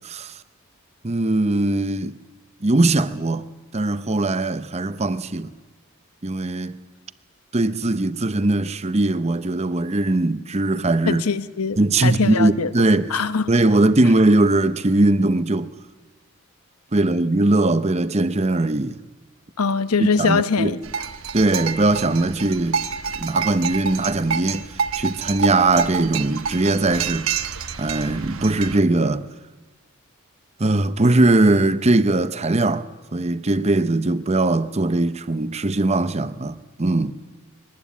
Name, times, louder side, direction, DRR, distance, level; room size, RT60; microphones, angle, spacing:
voice 1, 1.0-2.1 2.6-3.5 3.7-5.5 6.2-6.8 7.5-11.2 11.8-13.1 13.5-15.7 16.9-19.0 20.2-20.7 21.3-22.8 23.2-24.7 25.0-27.3 27.8-29.3 30.6-37.2, right 2 dB, 30° right, 0.7 m, -20 dB
voice 2, 11.1-12.7 13.1-13.5 19.6-20.8, left 5 dB, 85° left, 0.9 m, -22 dB
sound 1, 20.8-28.8, right 6 dB, 70° right, 1.0 m, -28 dB
23.0 x 19.5 x 8.4 m
head